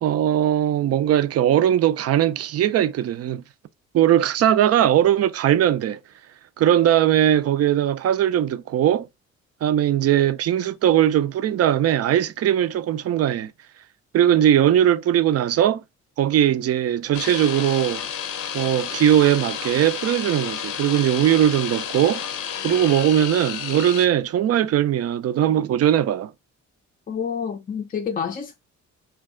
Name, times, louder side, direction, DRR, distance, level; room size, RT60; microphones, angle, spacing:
voice 1, 0.0-3.4 3.9-6.0 6.6-9.1 9.6-13.5 14.1-15.8 16.2-18.1 18.5-22.3 22.6-26.3, right 11 dB, 55° right, 0.4 m, -19 dB
sound 1, 17.1-24.1, left 8 dB, 90° left, 0.6 m, -31 dB
voice 2, 27.1-28.6, left 7 dB, 30° left, 0.4 m, -28 dB
2.5 x 2.3 x 3.6 m
cardioid pair, 90°, 30 cm